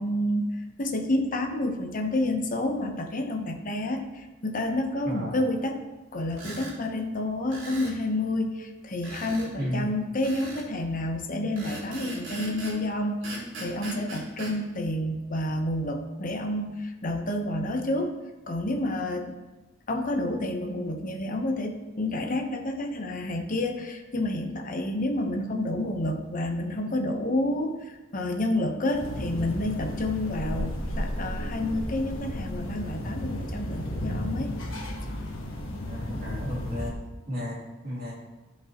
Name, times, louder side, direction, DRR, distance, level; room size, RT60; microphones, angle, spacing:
voice 1, 0.0-5.8 6.1-18.1 18.5-19.4 19.9-34.5, left 1 dB, 40° left, 4 dB, 0.9 m, -29 dB
voice 2, 5.0-5.4 9.6-9.9 35.9-37.0 37.3-38.1, left 1 dB, 45° right, -6 dB, 2.8 m, -33 dB
sound 1, 6.3-6.8 7.5-8.0 9.0-9.5 10.2-10.7 11.6-12.8 13.2-14.6, right 2 dB, 70° right, 2.4 m, -39 dB
sound 2, 28.9-36.9, left 1 dB, 80° left, 1.3 m, -33 dB
12.5 x 5.3 x 2.9 m, 1.1 s
head